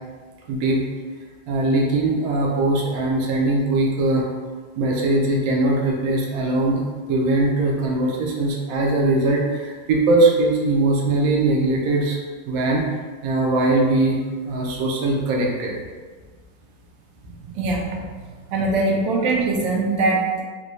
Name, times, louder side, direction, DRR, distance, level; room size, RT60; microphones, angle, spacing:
voice 1, 0.5-0.8 1.5-4.3 4.8-12.2 12.5-12.8 13.2-14.2 14.4-15.8, right 2 dB, 65° right, -2 dB, 0.9 m, -20 dB
voice 2, 17.5-18.0 18.5-20.4, right 3 dB, 85° right, -1 dB, 1.4 m, -21 dB
3.9 x 2.2 x 3.1 m, 1.4 s
omnidirectional pair, 2.0 m